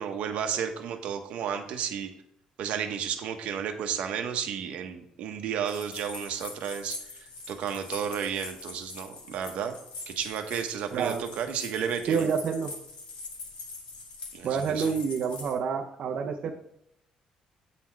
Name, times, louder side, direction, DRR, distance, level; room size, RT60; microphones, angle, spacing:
voice 1, 0.0-2.1 2.6-9.7 10.1-12.3 14.3-14.9, right 8 dB, 70° right, 6 dB, 1.0 m, -32 dB
sound 1, 5.7-15.5, left 3 dB, 55° left, 1.6 m, -43 dB
voice 2, 10.9-11.2 12.1-12.7 14.4-16.7, right 6 dB, 55° right, 1 dB, 0.6 m, -28 dB
8.5 x 4.2 x 4.5 m, 0.77 s
cardioid pair, 150°, 2 cm